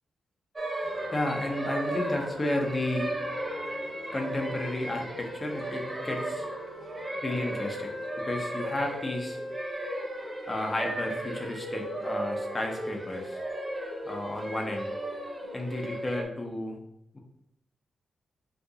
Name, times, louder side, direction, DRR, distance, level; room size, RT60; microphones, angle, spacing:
sound 1, 0.6-16.2, right 1 dB, 20° right, 0.5 m, -35 dB
voice 1, 0.7-3.1 4.1-6.4 7.2-7.9 8.3-9.4 10.5-13.4 14.0-14.9 15.5-16.8 17.1-17.2, left 1 dB, 20° left, 1 dB, 0.6 m, -32 dB
sound 2, 0.8-9.6, left 3 dB, 80° left, 0.6 m, -55 dB
sound 3, 2.0-8.2 8.9-16.0, equal, 60° right, 1.4 m, -46 dB
2.7 x 2.5 x 3.7 m, 0.79 s
cardioid pair, 105°, 0 cm